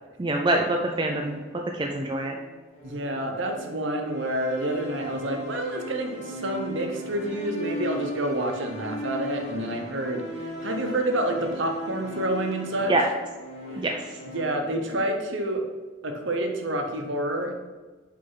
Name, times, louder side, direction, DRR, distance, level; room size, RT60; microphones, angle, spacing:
voice 1, 0.2-1.4 1.7-2.3 12.9-13.1 13.8-14.0, right 1 dB, 20° right, 1 dB, 0.4 m, -25 dB
sound 1, 1.0-14.9, equal, 30° left, 1.4 m, -38 dB
voice 2, 2.8-12.9 14.3-15.6 16.0-17.5, right 1 dB, 55° right, 4 dB, 0.9 m, -28 dB
6.4 x 3.4 x 5.6 m, 1.3 s
head